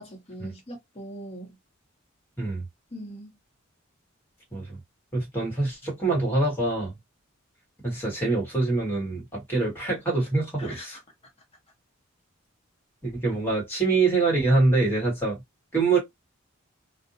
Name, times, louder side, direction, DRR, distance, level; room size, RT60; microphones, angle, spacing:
voice 1, 0.0-1.6 2.9-3.3 10.6-11.0, equal, 30° left, 0.9 m, -41 dB
voice 2, 5.1-6.9 7.8-11.0 13.0-15.4 15.7-16.0, right 3 dB, 10° left, 1.2 m, -25 dB
2.5 x 2.1 x 2.6 m
head